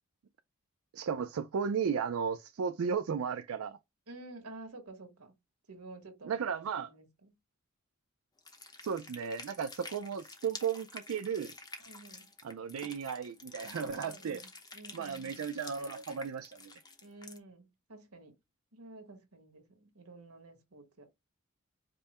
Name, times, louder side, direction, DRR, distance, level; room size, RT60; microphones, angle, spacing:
voice 1, 0.9-3.8 6.2-6.9 8.8-11.5 12.4-14.4 14.9-16.7, right 6 dB, 75° right, 0.4 m, -35 dB
voice 2, 4.1-5.3 5.7-7.3 11.8-12.3 13.8-15.5 17.0-18.4 18.7-21.1, right 2 dB, 90° right, 1.4 m, -51 dB
sound 1, 8.4-17.4, left 3 dB, 20° left, 0.8 m, -49 dB
5.2 x 2.1 x 4.1 m
head